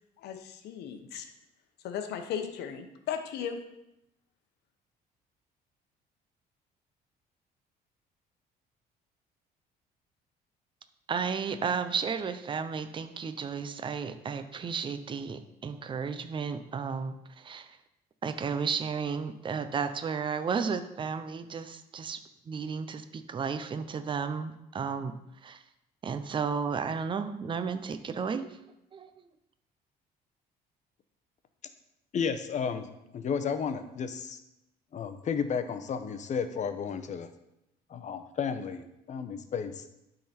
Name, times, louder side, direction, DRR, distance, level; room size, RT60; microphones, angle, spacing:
voice 1, 0.2-1.3 1.8-3.6, left 8 dB, 75° left, 6 dB, 1.0 m, -36 dB
voice 2, 11.1-17.8 18.2-22.2 22.5-25.1 25.4-25.6 26.0-28.6 28.9-29.2, right 6 dB, 30° right, 9 dB, 0.6 m, -33 dB
voice 3, 32.1-32.9 33.1-34.4 34.9-37.3 37.9-39.8, left 6 dB, 45° left, 9 dB, 0.8 m, -32 dB
11.5 x 3.9 x 4.3 m, 0.85 s
cardioid pair, 110°, 17 cm